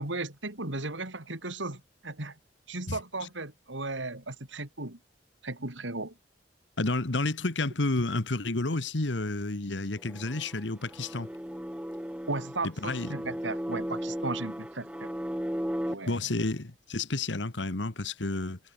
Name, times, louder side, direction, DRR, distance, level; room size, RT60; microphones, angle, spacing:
voice 1, 0.0-2.4 2.7-5.0 5.4-6.2 12.3-15.1 15.9-16.2, right 2 dB, 90° right, 4.0 m, -36 dB
voice 2, 6.8-11.3 12.6-13.1 16.1-18.6, left 2 dB, 75° left, 1.5 m, -30 dB
sound 1, 10.0-15.9, equal, 5° right, 1.4 m, -36 dB
head